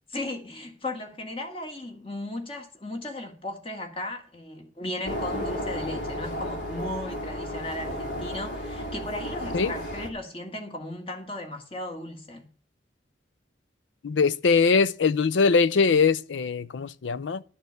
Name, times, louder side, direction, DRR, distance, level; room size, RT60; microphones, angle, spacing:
voice 1, 0.1-12.5, left 1 dB, 30° left, 1.6 m, -36 dB
sound 1, 5.0-10.1, left 1 dB, 60° left, 2.0 m, -33 dB
voice 2, 14.0-17.4, left 5 dB, 85° left, 0.5 m, -22 dB
11.5 x 4.3 x 8.0 m
head